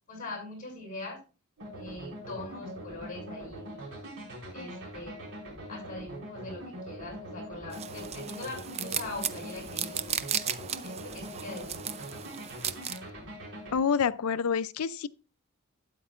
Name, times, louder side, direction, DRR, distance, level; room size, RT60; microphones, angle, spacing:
voice 1, 0.1-1.2 1.7-3.9 4.5-5.3 5.7-10.2 10.8-12.1, left 2 dB, 40° left, 6.2 m, -42 dB
sound 1, 1.6-13.8, equal, 60° right, 4.5 m, -43 dB
sound 2, 7.7-13.0, right 8 dB, 30° right, 0.5 m, -35 dB
voice 2, 13.7-15.1, left 6 dB, 80° left, 0.5 m, -27 dB
12.5 x 9.2 x 2.5 m
head